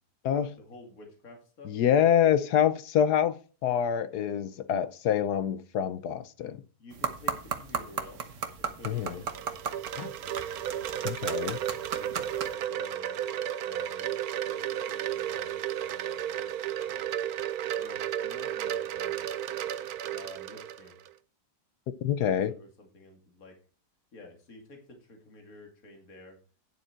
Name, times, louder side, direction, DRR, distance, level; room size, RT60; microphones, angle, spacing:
voice 1, 0.6-1.7 6.8-8.2 8.6-9.5 11.9-12.2 12.5-13.3 13.6-16.6 16.9-17.3 17.8-19.6 20.1-21.0 22.2-23.5 24.1-26.4, left 2 dB, 50° left, 2.8 m, -51 dB
voice 2, 1.6-6.6 8.8-9.2 9.9-10.1 11.0-11.6 22.0-22.5, left 9 dB, 65° left, 1.2 m, -26 dB
sound 1, 6.9-12.5, right 6 dB, 50° right, 1.2 m, -36 dB
Wind chime, 8.8-21.1, right 10 dB, 65° right, 1.0 m, -33 dB
10.0 x 7.2 x 4.4 m
omnidirectional pair, 2.0 m